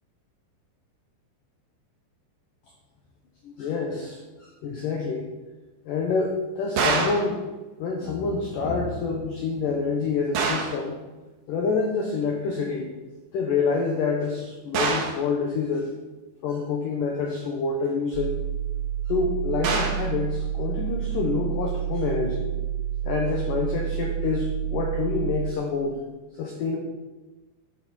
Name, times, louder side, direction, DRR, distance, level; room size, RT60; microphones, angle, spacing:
voice 1, 3.4-5.4 5.8-7.4 7.8-11.0 11.5-12.9 13.3-15.9 16.4-18.4 19.1-22.5 23.0-26.0 26.4-26.8, left 4 dB, 65° left, 2 dB, 2.2 m, -27 dB
sound 1, 6.8-7.3 10.3-10.8 14.7-15.2 19.6-20.1, right 4 dB, 60° right, 2.3 m, -25 dB
sound 2, 18.1-25.5, right 10 dB, 80° right, 2.2 m, -29 dB
13.0 x 11.5 x 4.4 m, 1.2 s
omnidirectional pair, 5.3 m